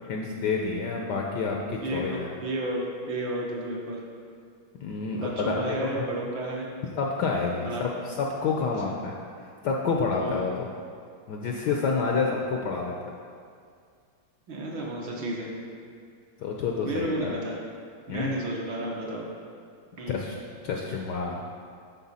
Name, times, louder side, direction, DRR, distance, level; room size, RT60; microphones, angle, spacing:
voice 1, 0.0-2.3 4.8-6.1 7.0-10.7 11.3-13.0 16.4-17.4 18.1-18.3 20.1-20.4 20.6-21.4, left 4 dB, 70° left, 0 dB, 1.0 m, -29 dB
voice 2, 1.8-4.0 5.1-6.7 7.7-7.9 8.6-8.7 10.2-10.4 14.5-15.6 16.8-17.6 18.1-19.3 20.0-20.2, right 1 dB, 70° right, -2 dB, 1.8 m, -32 dB
11.0 x 4.3 x 4.1 m, 2.2 s
omnidirectional pair, 2.3 m